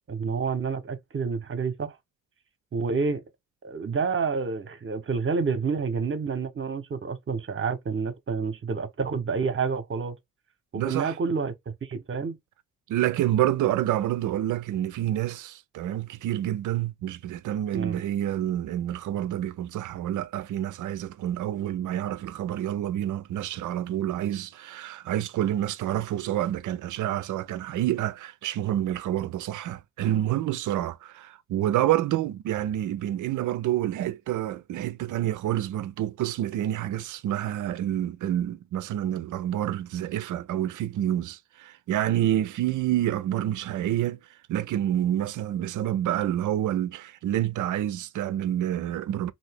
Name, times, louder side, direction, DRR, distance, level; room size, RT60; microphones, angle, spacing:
voice 1, 0.1-2.0 2.7-3.2 3.6-10.2 10.7-11.5 11.8-12.4 17.7-18.0, right 5 dB, 35° right, 0.9 m, -28 dB
voice 2, 10.7-11.2 12.9-44.2 44.5-49.3, right 12 dB, 60° right, 0.5 m, -28 dB
2.7 x 2.7 x 3.4 m
hypercardioid pair, 45°, 35 cm